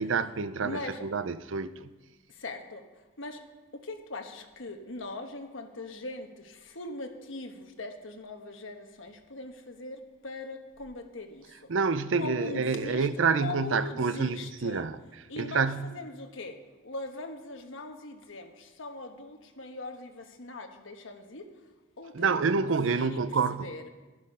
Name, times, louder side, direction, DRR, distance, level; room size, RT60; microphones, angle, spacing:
voice 1, 0.0-1.9 11.7-15.0 15.4-15.9 22.1-23.7, right 5 dB, 75° right, 0.6 m, -28 dB
voice 2, 0.6-1.0 2.3-2.8 3.2-3.4 3.7-11.7 12.1-14.9 15.3-16.6 16.8-21.5 22.0-23.9, left 2 dB, 75° left, 1.3 m, -41 dB
11.5 x 11.5 x 5.5 m
head